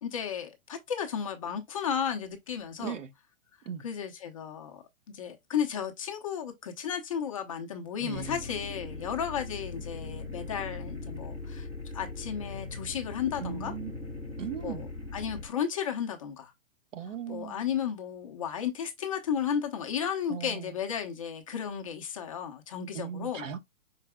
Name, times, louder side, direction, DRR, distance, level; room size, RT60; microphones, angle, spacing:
voice 1, 0.0-3.0 3.8-4.8 5.1-11.7 11.9-13.7 14.6-14.9 15.1-16.5 17.3-23.5, left 8 dB, 25° left, 0.6 m, -33 dB
voice 2, 2.8-3.1 3.6-3.8 8.0-8.4 13.4-13.9 14.4-14.9 16.9-17.6 20.3-20.7 22.9-23.6, right 8 dB, 70° right, 1.4 m, -38 dB
cpu fan - piezo, 8.1-15.5, left 2 dB, 10° right, 0.7 m, -40 dB
5.7 x 4.0 x 2.2 m
hypercardioid pair, 165°, 40 cm